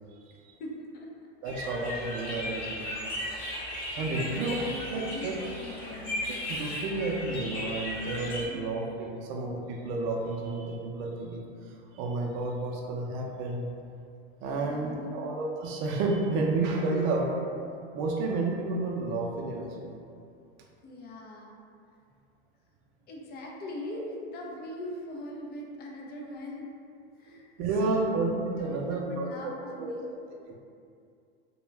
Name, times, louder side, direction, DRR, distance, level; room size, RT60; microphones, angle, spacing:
voice 1, 0.6-1.1 1.9-2.3 4.0-6.3 8.4-8.8 14.4-15.2 16.9-17.3 20.8-21.5 23.1-26.7 27.2-28.1 28.6-30.1, left 1 dB, 30° left, -2 dB, 0.5 m, -41 dB
voice 2, 1.4-2.9 3.6-4.5 4.9-5.3 6.5-11.4 11.9-13.7 14.4-17.2 17.9-20.0 27.6-29.5 29.8-29.9, right 3 dB, 55° right, 0 dB, 0.5 m, -31 dB
sound 1, 1.5-8.5, left 1 dB, 50° left, 0.8 m, -36 dB
2.3 x 2.2 x 3.1 m, 2.4 s
hypercardioid pair, 105°, 33 cm